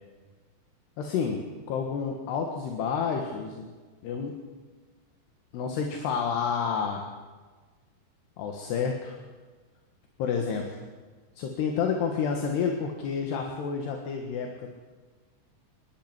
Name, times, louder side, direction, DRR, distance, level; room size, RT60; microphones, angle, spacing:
voice 1, 1.0-3.7 4.0-4.4 5.5-7.1 8.4-9.2 10.2-10.8 11.4-14.7, left 6 dB, 70° left, 3 dB, 3.7 m, -29 dB
27.0 x 12.0 x 9.7 m, 1.4 s
omnidirectional pair, 5.0 m